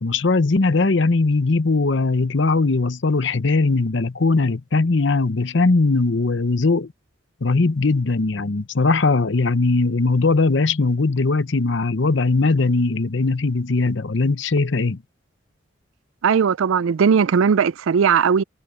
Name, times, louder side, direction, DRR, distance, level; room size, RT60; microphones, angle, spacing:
voice 1, 0.0-6.9 7.4-15.0, left 3 dB, 65° left, 0.8 m, -19 dB
voice 2, 16.2-18.4, right 6 dB, 80° right, 0.4 m, -18 dB
head